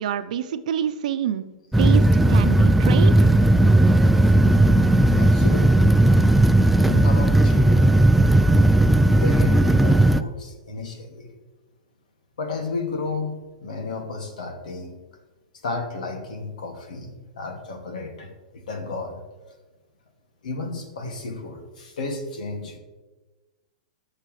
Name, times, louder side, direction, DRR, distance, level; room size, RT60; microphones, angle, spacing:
voice 1, 0.0-1.4 1.8-3.3, right 9 dB, 70° right, 11 dB, 0.8 m, -27 dB
sound 1, 1.7-10.2, right 1 dB, 5° right, 0.3 m, -16 dB
voice 2, 5.1-5.9 6.8-7.9 9.1-11.3 12.4-15.0 15.6-19.2 20.4-22.8, left 3 dB, 85° left, 3 dB, 2.3 m, -32 dB
19.5 x 6.6 x 3.3 m, 1.2 s
hypercardioid pair, 140°, 4 cm